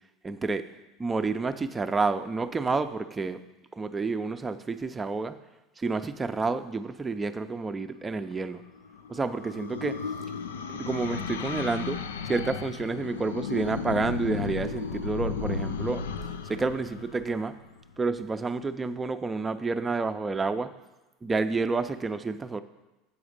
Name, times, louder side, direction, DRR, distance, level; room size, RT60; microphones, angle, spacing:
voice 1, 0.2-0.6 1.0-3.4 3.8-5.4 5.8-8.6 9.1-10.0 10.7-12.0 12.3-16.0 16.5-17.5 18.0-20.7 21.2-22.6, right 4 dB, 20° right, 8 dB, 0.5 m, -29 dB
sound 1, 8.4-18.0, left 6 dB, 90° left, 0.4 m, -34 dB
7.1 x 5.0 x 6.5 m, 1.1 s
hypercardioid pair, 90°, 0 cm